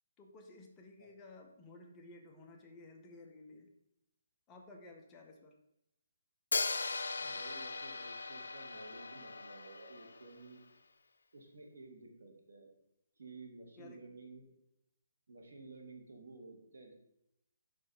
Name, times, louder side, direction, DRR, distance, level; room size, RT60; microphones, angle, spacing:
voice 1, 0.2-3.7 4.5-5.5 13.8-14.0, left 2 dB, 15° left, 1 dB, 0.6 m, -55 dB
Hi-hat, 6.5-10.5, left 4 dB, 85° left, 0.5 m, -39 dB
voice 2, 7.2-10.6 11.3-12.7 13.2-14.5 15.3-16.9, right 3 dB, 85° right, 2 dB, 1.6 m, -53 dB
5.4 x 4.0 x 5.1 m, 0.83 s
hypercardioid pair, 170°, 0 cm